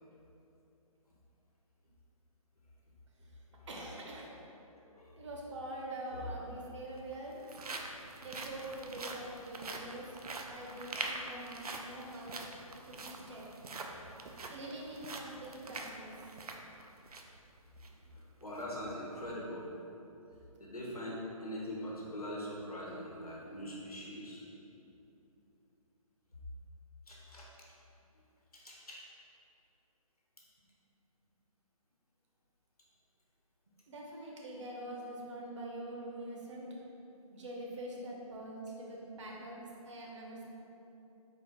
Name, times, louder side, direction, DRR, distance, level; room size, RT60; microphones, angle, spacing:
voice 1, 3.7-4.3 5.2-7.4 8.2-10.1 10.4-12.4 12.9-13.5 14.5-16.2 33.9-36.7 37.3-40.4, right 1 dB, 55° right, -2 dB, 0.8 m, -44 dB
voice 2, 4.9-5.3 6.1-6.3 18.4-19.7 20.6-24.4 27.1-27.4 28.5-29.0, left 1 dB, 85° left, -4 dB, 1.1 m, -42 dB
sound 1, 5.8-5.9 6.8-17.4 17.8-17.9 18.4-18.6, right 3 dB, 85° right, 0.5 m, -44 dB
4.1 x 2.5 x 4.1 m, 2.9 s
figure-of-eight pair, 140°, 19 cm